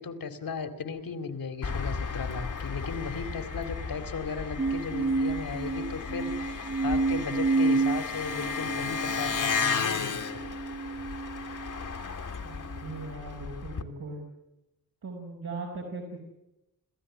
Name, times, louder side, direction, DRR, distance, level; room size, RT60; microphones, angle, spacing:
voice 1, 0.0-10.2, left 5 dB, 75° left, 9 dB, 2.4 m, -36 dB
Engine, 1.6-13.8, left 5 dB, 60° left, 1.6 m, -34 dB
sound 1, 4.6-12.0 12.6-13.1, right 3 dB, 25° right, 0.8 m, -30 dB
voice 2, 12.4-14.2 15.0-16.2, right 3 dB, 85° right, -2 dB, 5.1 m, -39 dB
28.5 x 15.0 x 9.7 m, 0.89 s
wide cardioid pair, 125°, 35 cm